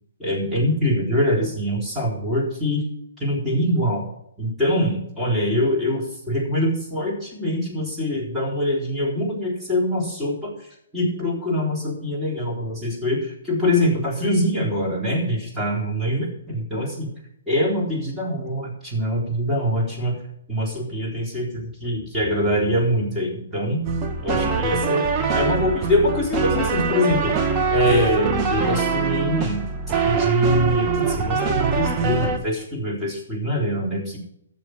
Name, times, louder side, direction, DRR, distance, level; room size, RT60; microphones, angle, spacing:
voice 1, 0.2-2.9 3.2-4.0 4.4-10.7 10.9-17.1 17.5-20.2 20.5-23.9 24.2-27.3 27.7-29.6 30.0-34.2, equal, 5° right, -4 dB, 3.8 m, -24 dB
sound 1, 23.8-32.4, right 5 dB, 25° right, 1.4 m, -23 dB
13.5 x 6.9 x 6.4 m, 0.74 s
hypercardioid pair, 135°, 0 cm